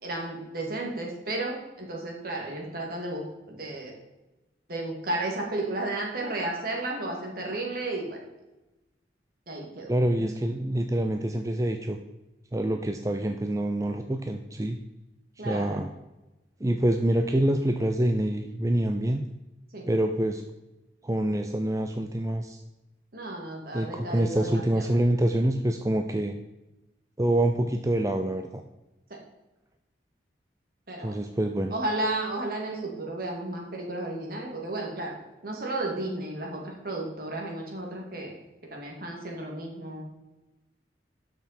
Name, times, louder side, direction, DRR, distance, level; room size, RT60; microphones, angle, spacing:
voice 1, 0.0-3.9 4.7-8.2 9.5-9.9 15.4-15.8 19.7-19.8 23.1-24.9 29.1-29.2 30.9-31.1 31.7-35.1 35.4-38.4 38.7-40.0, right 2 dB, 55° right, 0 dB, 2.4 m, -33 dB
voice 2, 9.9-12.0 12.5-14.8 15.4-15.9 16.6-19.2 19.9-20.4 21.0-22.6 23.7-26.4 27.2-28.6 31.0-31.7, right 1 dB, 20° right, 6 dB, 0.5 m, -26 dB
12.5 x 6.1 x 4.4 m, 1.0 s
head